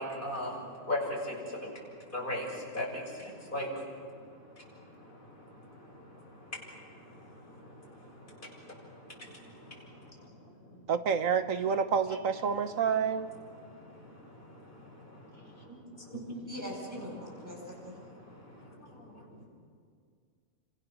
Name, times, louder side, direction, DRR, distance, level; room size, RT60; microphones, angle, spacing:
voice 1, 0.0-10.9 12.5-16.5 17.2-19.4, left 1 dB, 35° left, -2 dB, 7.0 m, -41 dB
voice 2, 10.9-13.3, right 6 dB, 70° right, 9 dB, 1.5 m, -28 dB
voice 3, 16.4-17.9, equal, 10° right, -3 dB, 8.0 m, -41 dB
29.5 x 26.0 x 6.5 m, 2.1 s
omnidirectional pair, 1.4 m